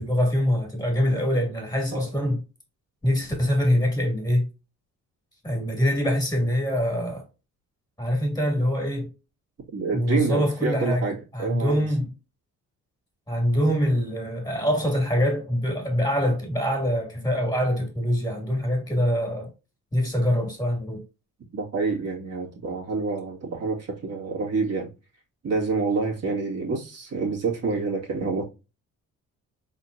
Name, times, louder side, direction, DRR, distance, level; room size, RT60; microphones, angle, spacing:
voice 1, 0.0-2.4 3.0-4.5 5.4-7.2 8.0-9.1 9.9-12.1 13.3-19.5 19.9-21.0, equal, 15° left, 2.5 m, -24 dB
voice 2, 9.7-11.9 21.5-24.9 25.4-28.4, right 4 dB, 55° right, 2.1 m, -27 dB
4.2 x 3.8 x 2.7 m
cardioid pair, 90°, 30 cm